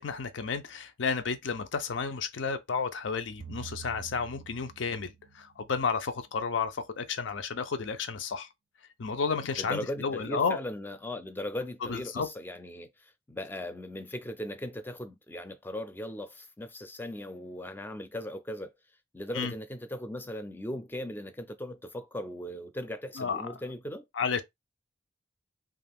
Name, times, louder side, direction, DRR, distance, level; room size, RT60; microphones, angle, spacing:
voice 1, 0.0-8.5 9.0-10.6 11.8-12.3 19.3-19.5 23.2-23.4 24.2-24.4, left 5 dB, 75° left, 0.5 m, -32 dB
sound 1, 3.4-5.8, right 7 dB, 75° right, 0.4 m, -47 dB
voice 2, 9.6-18.7 19.1-24.1, left 1 dB, 10° left, 0.4 m, -38 dB
2.4 x 2.4 x 3.4 m
head